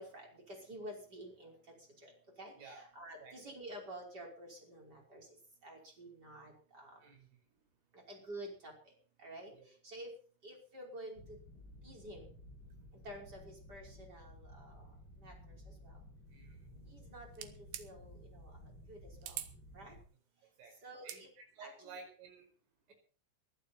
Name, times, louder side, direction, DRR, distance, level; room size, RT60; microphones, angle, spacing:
voice 1, 0.0-1.6 2.0-2.1 2.4-5.3 5.6-7.0 7.9-8.9 9.2-9.5 9.8-10.1 10.4-11.4 11.8-12.3 13.0-14.9 15.2-15.6 15.8-16.0 16.9-17.5 17.8-18.6 18.9-19.4 19.7-20.0 20.8-21.3 21.6-21.9, right 1 dB, 20° right, 0 dB, 5.5 m, -50 dB
sound 1, 11.1-20.0, left 1 dB, 25° left, 3.7 m, -55 dB
sound 2, 17.3-17.9 19.2-19.5 20.9-21.2, right 12 dB, 70° right, 3.0 m, -43 dB
voice 2, 20.4-20.8 21.0-22.5, right 4 dB, 85° right, 4 dB, 7.5 m, -53 dB
21.5 x 12.0 x 4.4 m, 0.41 s
omnidirectional pair, 5.7 m